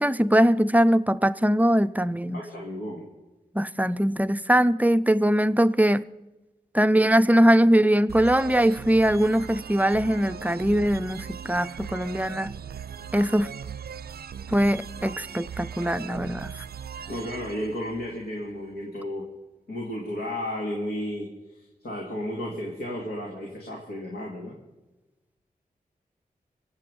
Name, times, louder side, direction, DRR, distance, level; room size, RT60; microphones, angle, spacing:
voice 1, 0.0-2.4 3.5-6.0 6.7-12.5 13.1-13.5 14.5-16.5, equal, 10° right, 0.5 m, -21 dB
voice 2, 2.3-3.0 17.1-19.2 19.7-24.5, left 1 dB, 80° left, 2.4 m, -33 dB
sound 1, 8.1-18.7, right 7 dB, 80° right, 0.6 m, -39 dB
24.0 x 8.4 x 5.3 m
cardioid pair, 40°, 16 cm